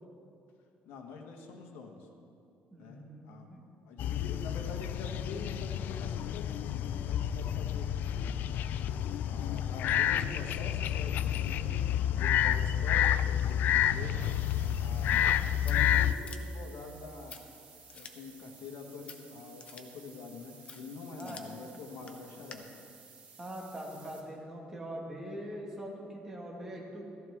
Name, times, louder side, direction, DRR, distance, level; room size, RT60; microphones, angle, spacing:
voice 1, 0.8-2.1 2.8-3.5 3.8-8.6 9.3-14.2 14.8-15.3 15.6-17.5 17.9-22.7, left 4 dB, 90° left, 3 dB, 1.5 m, -45 dB
voice 2, 2.7-3.6 15.0-15.2 21.2-21.4 23.4-27.0, right 1 dB, 15° right, -2 dB, 1.9 m, -42 dB
sound 1, 4.0-16.1, left 10 dB, 55° left, 0.3 m, -29 dB
sound 2, 14.2-24.2, right 5 dB, 40° right, 1.7 m, -56 dB
Scissors, 15.1-22.5, left 5 dB, 30° left, 0.8 m, -53 dB
14.5 x 14.0 x 3.6 m, 2.6 s
cardioid pair, 160°, 4 cm